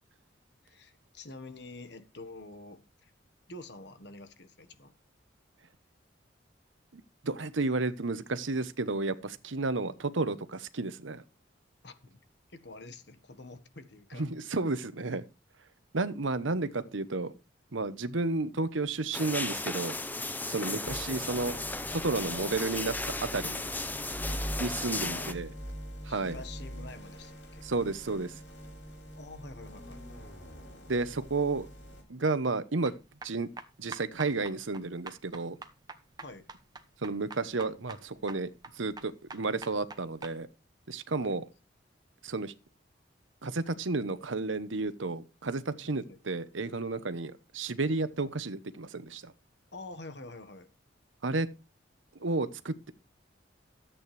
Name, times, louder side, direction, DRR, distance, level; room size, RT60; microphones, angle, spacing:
voice 1, 0.6-3.1 3.5-4.9 11.8-12.2 12.5-14.2 20.6-20.9 25.0-25.4 26.1-27.7 29.2-30.0 36.2-36.5 41.2-41.4 46.1-46.2 49.7-50.7, left 2 dB, 60° left, 1.4 m, -47 dB
voice 2, 6.9-11.2 14.1-15.2 15.9-17.3 17.7-20.0 20.5-21.6 21.9-23.6 24.6-25.5 26.0-26.4 27.6-28.4 30.9-31.7 32.1-32.9 33.2-33.5 33.8-35.6 37.0-38.5 38.7-40.5 40.9-41.4 42.2-42.5 43.4-49.3 51.2-51.5 52.2-52.9, right 3 dB, 80° right, 1.0 m, -32 dB
sound 1, 19.1-25.3, left 2 dB, 10° left, 0.7 m, -35 dB
sound 2, 20.9-32.0, equal, 75° left, 6.6 m, -43 dB
sound 3, 32.9-40.4, right 4 dB, 20° right, 0.9 m, -46 dB
13.5 x 8.7 x 3.3 m
head